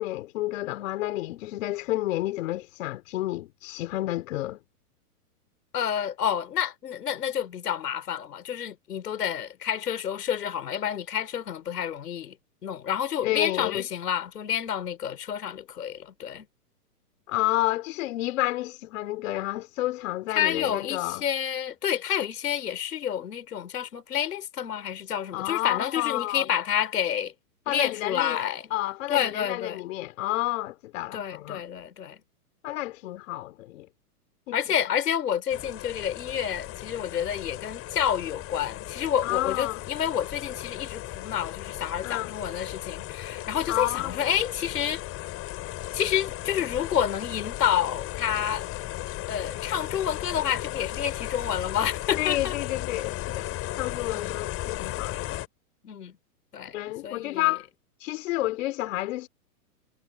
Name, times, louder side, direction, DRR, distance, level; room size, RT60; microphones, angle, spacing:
voice 1, 0.0-4.6 13.2-13.9 17.3-21.2 25.3-26.4 27.7-28.4 28.7-31.6 32.6-33.9 34.5-34.6 39.2-39.8 42.0-42.3 43.7-44.2 52.2-55.4 56.7-57.7 58.0-59.3, left 16 dB, 55° left, 3.9 m, -30 dB
voice 2, 5.7-12.4 12.6-16.5 20.3-27.3 27.7-28.7 29.1-29.8 31.1-32.2 34.5-45.0 45.9-48.7 49.3-52.6 54.1-54.4 55.8-56.2 56.5-56.8 57.0-57.5, left 9 dB, 80° left, 5.3 m, -29 dB
sound 1, 35.5-55.5, left 15 dB, 30° left, 5.6 m, -36 dB
hypercardioid pair, 135°, 47 cm